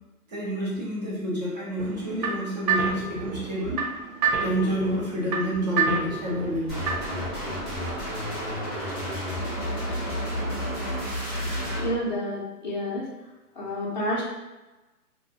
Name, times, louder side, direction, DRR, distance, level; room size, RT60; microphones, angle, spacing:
voice 1, 0.3-3.8 4.4-6.7, equal, 30° right, -5 dB, 0.5 m, -28 dB
sound 1, 1.8-7.2, right 5 dB, 85° right, 0.7 m, -29 dB
sound 2, 6.7-11.9, equal, 5° right, 0.8 m, -30 dB
voice 2, 11.8-13.1 13.5-14.2, left 1 dB, 30° left, -5 dB, 0.4 m, -29 dB
2.4 x 2.1 x 2.4 m, 1.1 s
hypercardioid pair, 155°, 46 cm